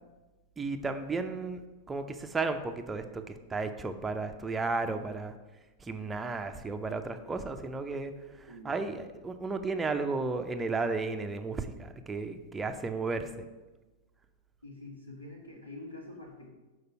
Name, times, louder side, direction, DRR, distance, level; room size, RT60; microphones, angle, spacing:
voice 1, 0.6-1.6 1.9-5.3 5.8-8.1 8.6-13.3, right 3 dB, 15° right, 6 dB, 0.6 m, -33 dB
voice 2, 8.5-8.9 14.6-16.5, left 2 dB, 80° left, -2 dB, 1.7 m, -46 dB
6.6 x 4.6 x 5.7 m, 1.2 s
figure-of-eight pair, 90°, 0 cm